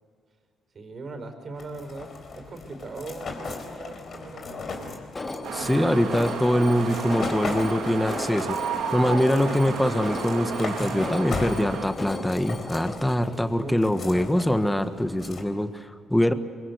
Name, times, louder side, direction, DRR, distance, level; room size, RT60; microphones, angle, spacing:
voice 1, 0.7-5.0 5.2-5.9 13.3-13.8, right 3 dB, 45° right, 6 dB, 4.8 m, -40 dB
sound 1, 1.6-15.4, left 4 dB, 50° left, 3.9 m, -38 dB
Alarm, 5.2-13.0, left 2 dB, 25° left, 2.4 m, -37 dB
sound 2, 5.4-11.9, right 6 dB, 90° right, 2.7 m, -32 dB
voice 2, 5.5-8.6 8.9-16.3, left 1 dB, 5° left, 9 dB, 1.4 m, -23 dB
25.0 x 23.0 x 8.0 m, 2.3 s
cardioid pair, 90°, 0 cm